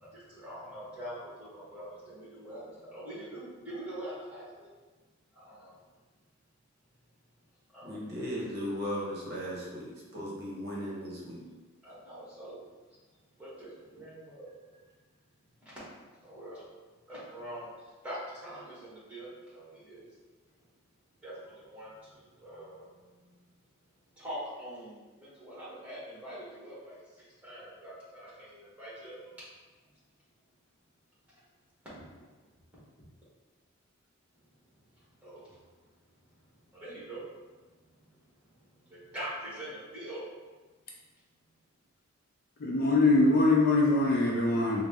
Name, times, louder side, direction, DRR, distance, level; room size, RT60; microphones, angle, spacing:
voice 1, 0.0-4.7 5.3-5.7 7.7-7.9 11.8-12.6 13.4-14.8 15.6-15.8 16.2-16.6 17.1-20.0 21.2-23.4 24.2-29.5 31.8-32.1 35.2-35.6 36.7-37.2 38.8-40.2, right 1 dB, 5° right, -9 dB, 1.2 m, -44 dB
voice 2, 7.8-11.4, equal, 45° right, -5 dB, 0.8 m, -37 dB
voice 3, 42.6-44.8, left 2 dB, 40° left, -2 dB, 0.4 m, -23 dB
3.9 x 2.0 x 3.4 m, 1.3 s
head